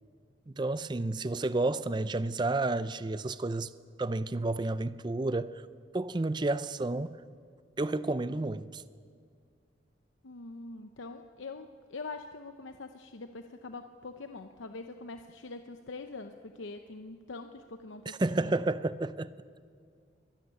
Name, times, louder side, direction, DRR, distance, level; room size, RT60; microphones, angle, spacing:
voice 1, 0.5-3.7 4.0-5.6 5.9-7.2 7.8-8.8 18.1-19.3, right 2 dB, 25° right, 0.4 m, -31 dB
voice 2, 10.2-18.5, left 3 dB, 90° left, 0.8 m, -44 dB
23.5 x 13.5 x 9.4 m
head